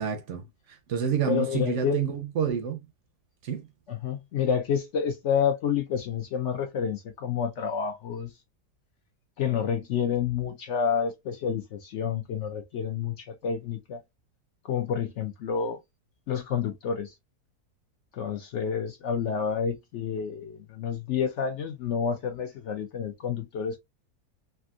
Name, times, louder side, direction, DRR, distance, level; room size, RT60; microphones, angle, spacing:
voice 1, 0.0-2.9 3.4-3.7, right 7 dB, 65° right, 0.8 m, -29 dB
voice 2, 1.3-2.0 3.9-8.3 9.4-14.0 14.6-15.8 16.3-17.1 18.1-23.8, left 7 dB, 70° left, 0.7 m, -29 dB
3.4 x 2.5 x 2.3 m
omnidirectional pair, 1.7 m